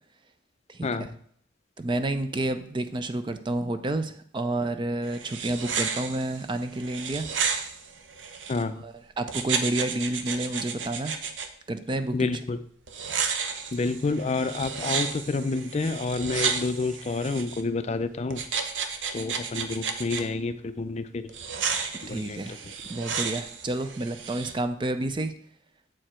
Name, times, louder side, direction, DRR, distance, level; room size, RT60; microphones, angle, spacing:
voice 1, 0.7-1.1 1.8-7.3 8.8-11.1 11.7-12.4 22.1-22.6 22.9-25.3, right 2 dB, 25° right, 9 dB, 0.4 m, -30 dB
sound 1, 5.0-8.6 9.3-11.5 12.9-17.6 18.3-20.2 21.3-24.5, right 6 dB, 85° right, 0.8 m, -32 dB
voice 2, 8.5-8.8 12.1-12.6 13.7-18.4 19.1-21.3 22.0-22.4 22.7-22.8, left 3 dB, 35° left, 11 dB, 0.4 m, -29 dB
7.6 x 4.7 x 4.3 m, 0.63 s
head